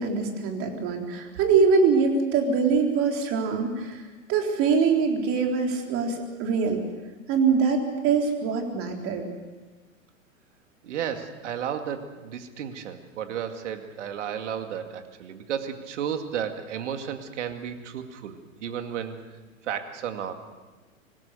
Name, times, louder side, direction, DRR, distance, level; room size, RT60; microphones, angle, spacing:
voice 1, 0.0-4.0 4.3-6.8 7.3-9.3, right 5 dB, 30° right, 2 dB, 3.9 m, -23 dB
voice 2, 10.8-19.2 19.6-20.3, right 8 dB, 60° right, 7 dB, 2.3 m, -33 dB
25.5 x 19.5 x 6.7 m, 1.3 s
figure-of-eight pair, 110°, 41 cm